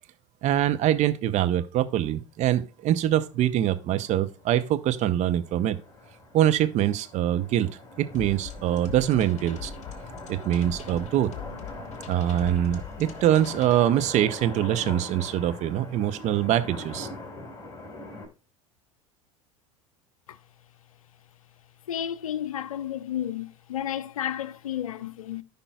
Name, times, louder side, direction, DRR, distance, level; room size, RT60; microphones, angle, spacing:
voice 1, 0.4-5.8 6.3-7.7 8.0-9.7 10.3-11.3 12.1-17.1, right 11 dB, 40° right, 0.7 m, -24 dB
sound 1, 3.1-3.2 3.5-3.6 3.8-18.3, left 2 dB, 20° left, 2.6 m, -42 dB
sound 2, 8.1-13.8, left 7 dB, 40° left, 1.3 m, -42 dB
voice 2, 21.9-25.4, left 10 dB, 75° left, 0.5 m, -32 dB
13.5 x 5.3 x 2.3 m
figure-of-eight pair, 75°, 18 cm